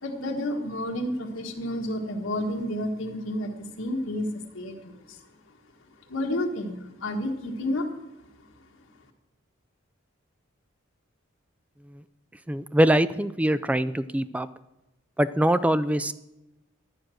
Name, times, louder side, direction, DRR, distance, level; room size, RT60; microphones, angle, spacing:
voice 1, 0.0-4.3 4.5-5.2 6.1-7.8, left 1 dB, 85° left, 1 dB, 1.5 m, -30 dB
voice 2, 12.5-14.5 15.2-16.1, right 1 dB, 5° right, 14 dB, 0.3 m, -23 dB
12.0 x 7.8 x 6.3 m, 0.95 s
head